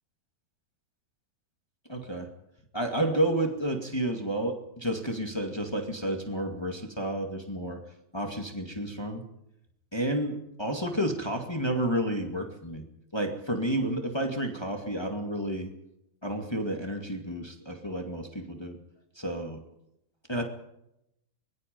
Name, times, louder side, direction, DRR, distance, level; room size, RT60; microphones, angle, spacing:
voice 1, 1.9-2.3 2.7-7.8 8.1-9.2 9.9-12.8 13.1-15.7 16.2-18.8 19.1-19.6 20.3-20.4, right 1 dB, 20° left, 3 dB, 0.7 m, -30 dB
24.5 x 21.5 x 5.4 m, 0.83 s
omnidirectional pair, 4.7 m